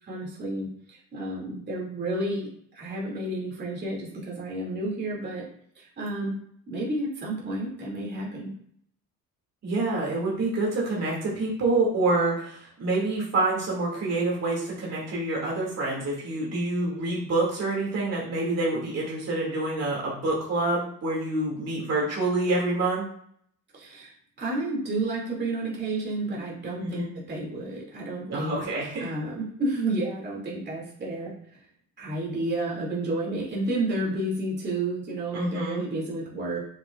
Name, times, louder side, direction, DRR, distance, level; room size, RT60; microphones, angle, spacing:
voice 1, 0.0-5.5 5.7-6.4 6.7-8.5 23.7-24.1 24.4-28.6 29.0-31.6 32.0-36.6, right 2 dB, 30° right, -4 dB, 2.6 m, -31 dB
voice 2, 9.6-23.0 26.8-27.1 28.3-29.0 35.3-35.8, right 2 dB, 50° right, -4 dB, 2.6 m, -27 dB
7.3 x 6.3 x 2.5 m, 0.65 s
cardioid pair, 125°, 34 cm